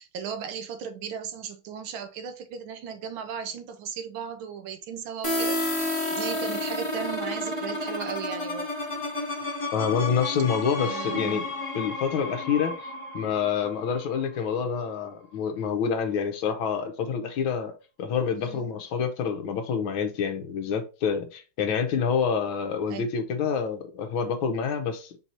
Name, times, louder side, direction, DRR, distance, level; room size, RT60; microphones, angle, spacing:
voice 1, 0.0-8.7 10.8-11.4 18.3-18.7 22.9-23.0, right 7 dB, 75° right, 1.4 m, -36 dB
sound 1, 5.2-14.8, left 1 dB, 25° left, 0.7 m, -31 dB
voice 2, 9.7-12.9 13.1-17.7 18.0-25.2, left 6 dB, 75° left, 1.6 m, -27 dB
4.6 x 2.7 x 4.3 m
omnidirectional pair, 2.3 m